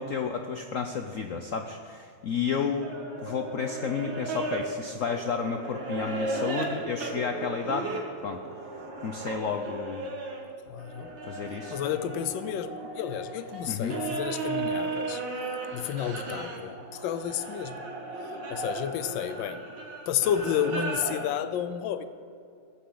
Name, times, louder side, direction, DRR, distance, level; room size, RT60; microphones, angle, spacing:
voice 1, 0.0-2.9 3.2-7.9 8.2-8.4 9.0-10.0 11.2-11.8 13.7-14.0, left 6 dB, 85° left, 5 dB, 0.7 m, -31 dB
sound 1, 2.8-10.4 10.8-21.3, right 3 dB, 60° right, 2.4 m, -35 dB
voice 2, 10.7-11.1 11.7-15.2 15.7-17.9 18.5-19.6 20.1-22.1, left 9 dB, 70° left, 12 dB, 1.3 m, -31 dB
15.5 x 15.0 x 3.9 m, 2.3 s
omnidirectional pair, 2.3 m